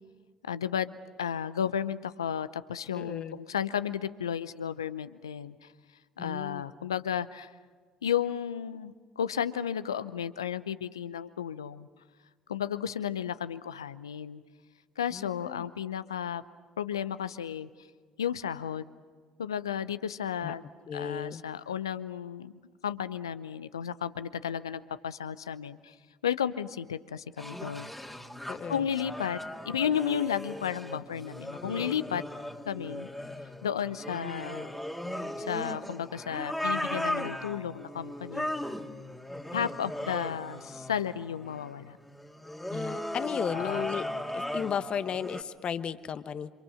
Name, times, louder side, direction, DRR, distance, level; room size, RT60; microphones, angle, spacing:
voice 1, 0.4-5.7 6.2-7.5 8.0-11.9 12.5-14.4 15.0-16.4 16.8-17.7 18.2-18.9 19.4-20.6 20.9-22.5 22.8-26.0 26.2-27.9 28.7-29.4 29.7-32.2 32.7-33.1 33.6-34.7 35.4-38.5 39.5-42.0 43.5-43.9, left 8 dB, 85° left, 15 dB, 0.7 m, -33 dB
voice 2, 3.0-3.4 6.2-6.6 15.1-15.7 20.4-20.5 20.9-21.4 28.5-28.8 42.7-44.1 44.3-46.5, left 7 dB, 45° left, 13 dB, 1.1 m, -34 dB
sound 1, 27.4-45.4, left 1 dB, 5° left, 2.1 m, -37 dB
29.0 x 26.5 x 6.4 m, 1.5 s
figure-of-eight pair, 55°, 2 cm